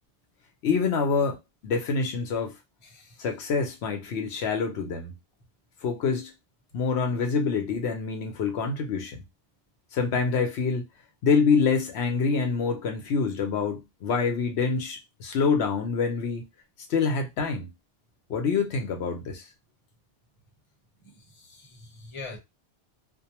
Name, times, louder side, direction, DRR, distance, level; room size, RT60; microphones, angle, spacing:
voice 1, 0.6-2.6 3.2-5.1 5.8-6.3 6.7-9.2 9.9-10.8 11.2-16.4 16.9-17.7 18.3-19.4, left 5 dB, 80° left, 0.9 m, -26 dB
voice 2, 2.8-3.2 21.0-22.4, left 3 dB, 30° left, 0.8 m, -44 dB
2.5 x 2.2 x 2.8 m
omnidirectional pair, 1.1 m